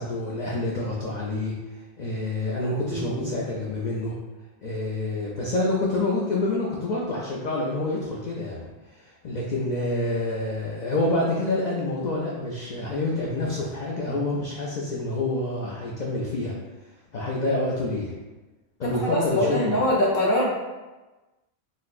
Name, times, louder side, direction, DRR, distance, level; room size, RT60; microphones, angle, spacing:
voice 1, 0.0-4.1 4.6-8.6 8.9-16.6 17.1-18.1 18.8-19.7, left 2 dB, 85° left, -4 dB, 0.4 m, -27 dB
voice 2, 2.9-3.4 18.8-20.5, left 1 dB, 55° left, -5 dB, 0.8 m, -24 dB
4.1 x 2.0 x 2.4 m, 1.1 s
omnidirectional pair, 1.3 m